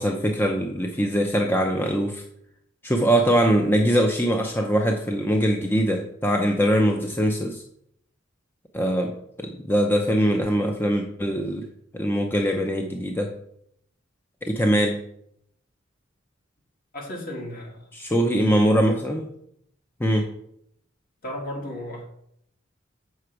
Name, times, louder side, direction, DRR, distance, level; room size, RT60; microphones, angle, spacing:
voice 1, 0.0-2.2 2.8-7.6 8.7-9.1 9.4-11.7 11.9-13.3 14.4-15.0 17.9-19.3 20.0-20.3, equal, 10° left, 3 dB, 0.6 m, -22 dB
voice 2, 16.9-17.8 21.2-22.1, left 1 dB, 50° left, 0 dB, 2.1 m, -34 dB
6.7 x 6.4 x 4.7 m, 0.73 s
head